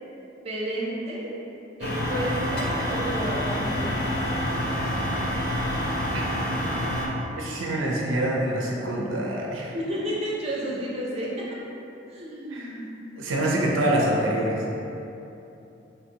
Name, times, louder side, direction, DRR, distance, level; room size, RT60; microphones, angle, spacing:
voice 1, 0.4-1.3 1.8-4.0 9.7-11.5 12.1-12.9, right 1 dB, 30° right, -5 dB, 0.5 m, -31 dB
sound 1, 1.8-7.1, equal, 55° left, 0.4 m, -27 dB
voice 2, 7.4-9.8 12.5-12.8 13.2-14.6, right 1 dB, 90° right, -2 dB, 0.5 m, -25 dB
3.7 x 2.6 x 2.8 m, 2.9 s
head